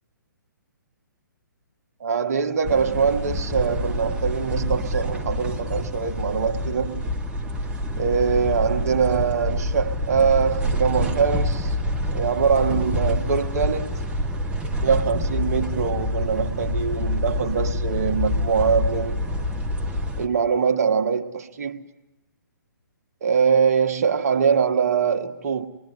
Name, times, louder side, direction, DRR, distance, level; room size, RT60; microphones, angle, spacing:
voice 1, 2.0-7.0 8.0-11.8 12.1-13.9 14.8-19.2 20.2-21.8 23.2-25.7, right 6 dB, 50° right, 1.5 m, -23 dB
sound 1, 2.6-20.3, left 1 dB, 10° right, 1.3 m, -27 dB
25.5 x 21.5 x 9.6 m
figure-of-eight pair, 130°, 11 cm